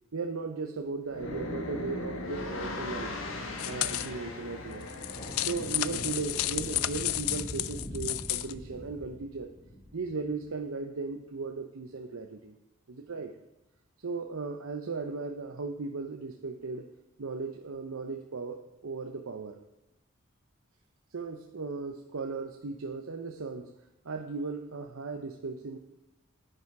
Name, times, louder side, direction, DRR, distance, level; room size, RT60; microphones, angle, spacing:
voice 1, 0.1-3.2 3.6-4.9 5.4-9.5 9.9-12.6 12.9-13.3 14.0-16.9 17.2-19.6 21.1-23.7 24.0-25.8, right 4 dB, 90° right, 4 dB, 0.8 m, -37 dB
sound 1, 1.1-6.2, left 2 dB, 75° left, 1.5 m, -38 dB
sound 2, 3.6-4.1 4.8-8.5, left 15 dB, 90° left, 0.4 m, -32 dB
sound 3, 4.9-10.5, equal, 20° left, 2.9 m, -43 dB
10.0 x 9.4 x 4.8 m, 0.95 s
head